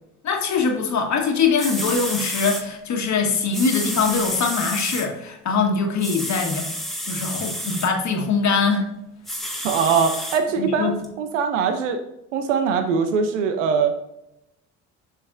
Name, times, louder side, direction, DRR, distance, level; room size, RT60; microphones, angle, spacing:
voice 1, 0.2-6.7 7.0-8.9 10.6-10.9, left 5 dB, 50° left, 3 dB, 1.6 m, -22 dB
sound 1, 1.3-1.4 1.6-2.6 3.5-5.1 6.0-7.9 9.2-10.4 11.0-11.1, equal, ahead, 1.5 m, -30 dB
voice 2, 9.6-12.0 12.3-13.9, right 6 dB, 90° right, 7 dB, 0.7 m, -22 dB
7.6 x 5.7 x 2.5 m, 0.85 s
hypercardioid pair, 55°, 36 cm